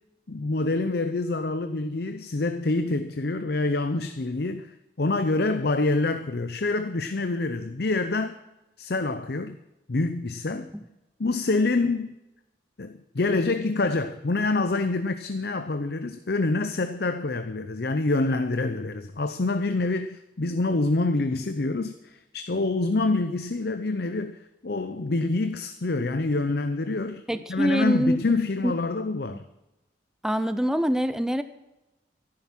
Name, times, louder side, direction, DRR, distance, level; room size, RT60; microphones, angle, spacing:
voice 1, 0.3-8.4 8.8-9.6 9.9-10.7 11.2-12.1 12.8-27.2 27.5-29.4, left 2 dB, 55° left, 10 dB, 0.7 m, -26 dB
voice 2, 27.3-28.2 28.6-28.7 29.3-29.4 30.2-31.4, equal, 5° right, 11 dB, 0.5 m, -24 dB
13.5 x 11.5 x 6.0 m, 0.97 s
head